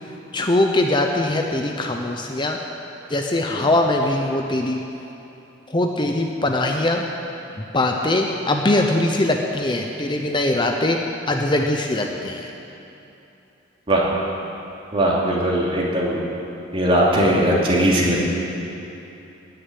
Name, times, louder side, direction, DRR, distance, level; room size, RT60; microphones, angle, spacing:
voice 1, 0.3-2.6 3.1-4.8 5.7-7.0 7.6-11.0 11.3-12.5, left 1 dB, 25° left, 2 dB, 0.8 m, -21 dB
voice 2, 14.9-16.2 16.7-18.3, right 1 dB, 30° right, -5 dB, 2.8 m, -19 dB
17.5 x 6.9 x 9.5 m, 2.9 s
head